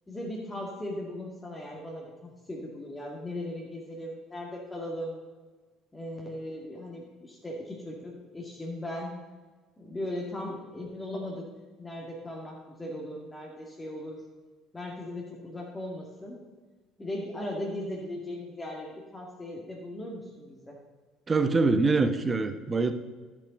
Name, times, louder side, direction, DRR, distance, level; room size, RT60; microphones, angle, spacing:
voice 1, 0.1-5.2 5.9-9.1 9.8-11.5 11.8-14.2 14.7-16.4 17.0-20.8, left 1 dB, 15° left, -2 dB, 2.1 m, -38 dB
voice 2, 21.3-22.9, right 3 dB, 25° right, 10 dB, 0.9 m, -24 dB
11.5 x 6.9 x 5.2 m, 1.3 s
figure-of-eight pair, 55°, 0 cm